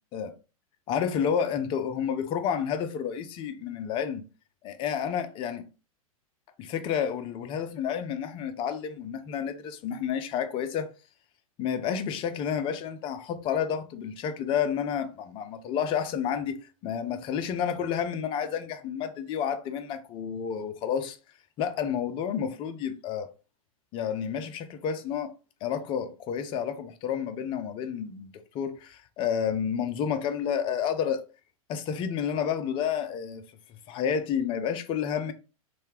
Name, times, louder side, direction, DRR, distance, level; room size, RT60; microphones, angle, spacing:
voice 1, 0.9-4.2 4.6-5.6 6.6-10.9 11.6-21.2 21.6-23.3 23.9-25.3 25.6-31.2 31.7-33.4 33.9-35.3, left 8 dB, 30° left, 0.4 m, -30 dB
2.8 x 2.2 x 3.0 m
figure-of-eight pair, 100°, 19 cm